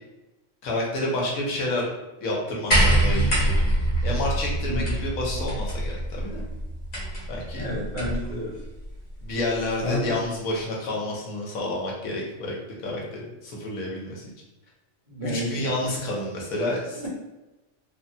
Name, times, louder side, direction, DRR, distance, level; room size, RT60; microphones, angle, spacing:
voice 1, 0.6-1.9 2.2-3.5 4.0-6.4 7.3-7.6 9.2-12.6 12.8-14.2 15.2-17.0, left 1 dB, 85° left, -3 dB, 1.2 m, -29 dB
sound 1, 2.7-8.3 9.4-9.5, right 1 dB, 40° left, 1.0 m, -24 dB
voice 2, 4.7-5.0 7.5-8.6 9.8-10.1 15.1-16.0 17.0-17.1, left 1 dB, 15° right, -10 dB, 1.1 m, -30 dB
3.2 x 2.1 x 2.7 m, 1.0 s
omnidirectional pair, 1.4 m